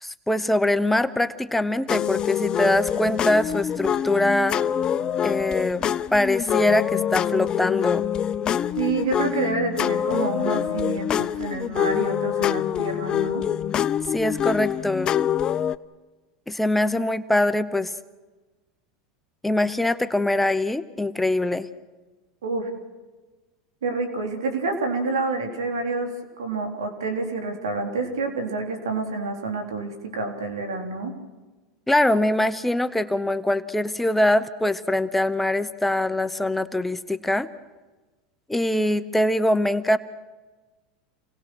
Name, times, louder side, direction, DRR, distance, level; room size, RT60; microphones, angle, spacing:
voice 1, 0.0-4.6 5.2-5.9 6.1-8.1 14.1-15.1 16.5-17.9 19.4-21.7 31.9-37.5 38.5-40.0, left 1 dB, 5° left, 12 dB, 0.9 m, -23 dB
sound 1, 1.9-15.8, left 9 dB, 35° left, 0.6 m, -25 dB
voice 2, 8.8-13.4 22.4-22.7 23.8-31.1, right 3 dB, 90° right, 4 dB, 3.7 m, -28 dB
28.0 x 19.0 x 6.3 m, 1.2 s
hypercardioid pair, 105°, 2 cm